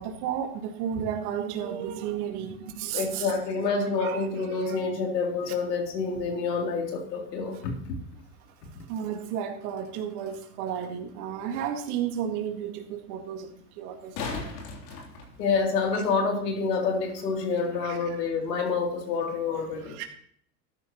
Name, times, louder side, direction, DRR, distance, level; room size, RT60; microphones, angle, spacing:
voice 1, 0.0-3.3 4.0-4.2 4.5-4.8 7.5-7.6 8.9-13.5 13.8-14.6 15.9-16.0 17.8-18.2 19.8-20.0, right 8 dB, 65° right, 3 dB, 2.2 m, -33 dB
voice 2, 2.9-7.7 15.4-20.0, left 4 dB, 85° left, 1 dB, 3.4 m, -28 dB
sound 1, 13.8-15.9 18.8-18.9, left 4 dB, 70° left, 3.6 m, -37 dB
13.5 x 11.0 x 3.1 m, 0.62 s
supercardioid pair, 115°, 48 cm